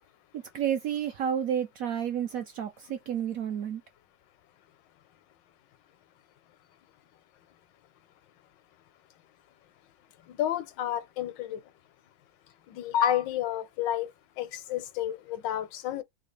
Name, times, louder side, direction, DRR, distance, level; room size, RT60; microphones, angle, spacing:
voice 1, 0.3-3.8, right 9 dB, 70° right, 0.8 m, -31 dB
voice 2, 10.3-11.6 12.7-14.1 14.4-16.0, left 11 dB, 90° left, 1.3 m, -30 dB
3.5 x 2.4 x 3.2 m
omnidirectional pair, 1.9 m